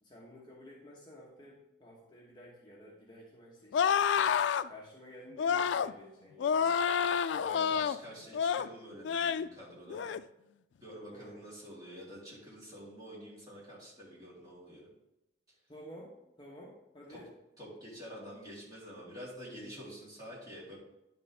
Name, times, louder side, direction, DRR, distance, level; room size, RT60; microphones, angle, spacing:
voice 1, 0.0-4.1 4.7-6.8 11.1-11.5 15.7-17.3, equal, 25° left, -4 dB, 1.2 m, -52 dB
sound 1, 3.7-4.7 5.4-5.9 6.4-8.0 8.3-8.7 9.0-9.5 9.9-10.2, left 7 dB, 75° left, 0.3 m, -29 dB
voice 2, 7.4-10.1 10.8-14.9 17.1-17.2 17.6-20.8, equal, 20° right, -7 dB, 3.4 m, -48 dB
10.0 x 7.0 x 3.5 m, 0.90 s
head